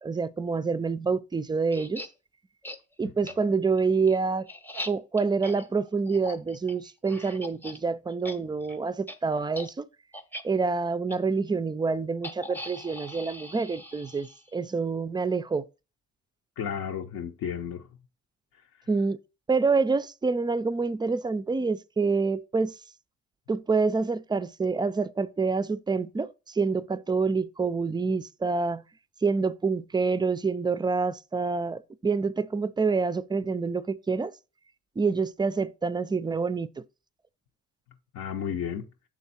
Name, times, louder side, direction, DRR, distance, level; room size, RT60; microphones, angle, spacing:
voice 1, 0.0-2.0 3.0-4.5 4.8-9.9 10.4-15.7 18.9-19.2 19.5-22.7 23.5-28.8 29.2-34.3 35.0-36.8, right 4 dB, 15° right, 0.3 m, -27 dB
sound 1, 1.7-2.1 2.6-2.8 3.3-3.4 3.8-7.8 8.1-8.4 8.6-8.8 9.1-9.2 9.5-9.7 10.1-10.4 11.1-11.2 12.2-14.6, left 1 dB, 5° left, 0.7 m, -41 dB
voice 2, 16.6-17.8 38.1-38.9, left 8 dB, 75° left, 0.7 m, -32 dB
6.3 x 3.6 x 4.2 m
cardioid pair, 90°, 30 cm